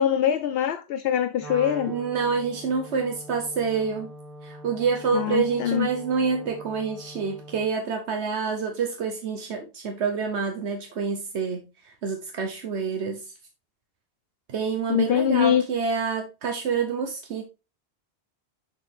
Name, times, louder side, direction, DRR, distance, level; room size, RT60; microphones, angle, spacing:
voice 1, 0.0-1.9 5.1-5.9 14.9-15.7, left 9 dB, 65° left, 0.7 m, -23 dB
Wind instrument woodwind instrument, 1.4-7.7, equal, ahead, 3.4 m, -43 dB
voice 2, 1.9-4.1 4.4-13.3 14.5-17.4, right 5 dB, 80° right, 1.3 m, -27 dB
7.0 x 6.3 x 3.3 m
omnidirectional pair, 1.1 m